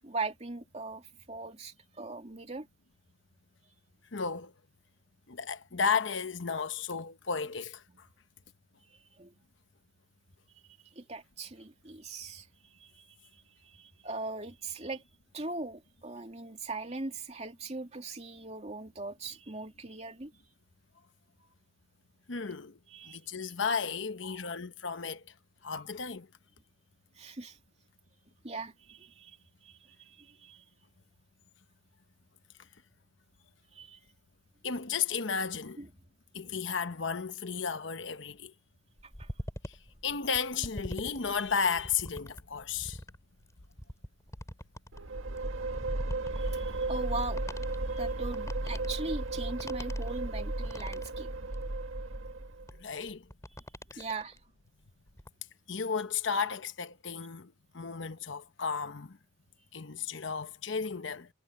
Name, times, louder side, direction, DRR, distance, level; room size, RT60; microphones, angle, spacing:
voice 1, 0.0-2.7 9.2-9.3 10.9-12.5 12.8-13.0 13.6-15.0 15.3-20.3 22.9-23.2 24.2-24.5 27.2-27.6 28.4-29.4 29.6-30.6 33.7-34.0 35.8-35.9 39.2-39.3 46.3-47.4 47.9-51.3 54.0-54.4, right 3 dB, 35° right, 2.7 m, -40 dB
voice 2, 4.1-4.5 5.3-8.1 22.3-22.8 23.0-25.3 25.6-26.3 34.6-35.8 36.3-38.5 39.7-39.8 40.0-43.0 52.8-53.3 53.9-54.0 55.7-59.2 59.7-61.3, left 6 dB, 65° left, 1.0 m, -33 dB
sound 1, 39.0-54.4 54.8-55.3, equal, 15° left, 5.7 m, -45 dB
sound 2, 44.9-52.8, right 2 dB, 85° right, 1.7 m, -34 dB
head